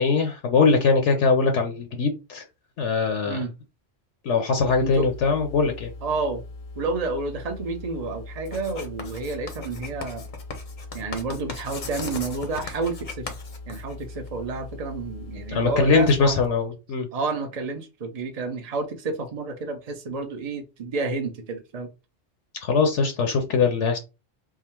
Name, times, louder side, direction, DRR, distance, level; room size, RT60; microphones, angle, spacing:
voice 1, 0.0-2.4 2.8-3.4 4.2-5.9 15.5-17.1 22.6-24.0, left 4 dB, 70° left, 1.0 m, -21 dB
sound 1, 4.6-16.5, left 2 dB, 85° left, 1.3 m, -41 dB
voice 2, 6.0-6.4 6.8-10.3 10.9-13.3 13.7-16.4 17.1-21.9, right 3 dB, 35° right, 0.7 m, -30 dB
Writing, 8.5-14.3, left 4 dB, 45° left, 0.8 m, -38 dB
3.6 x 2.1 x 4.3 m
omnidirectional pair, 1.3 m